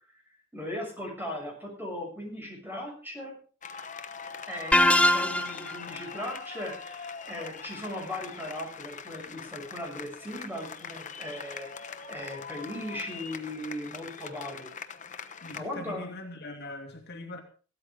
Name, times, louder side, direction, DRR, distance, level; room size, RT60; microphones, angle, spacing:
voice 1, 0.5-3.3 4.5-14.7 15.5-16.1, left 1 dB, 10° right, 6.7 m, -38 dB
sound 1, 3.6-15.6, left 6 dB, 40° left, 1.1 m, -42 dB
sound 2, 4.7-5.8, left 1 dB, 5° left, 0.6 m, -21 dB
voice 2, 15.4-17.4, left 2 dB, 55° left, 2.4 m, -41 dB
16.5 x 13.0 x 3.8 m
head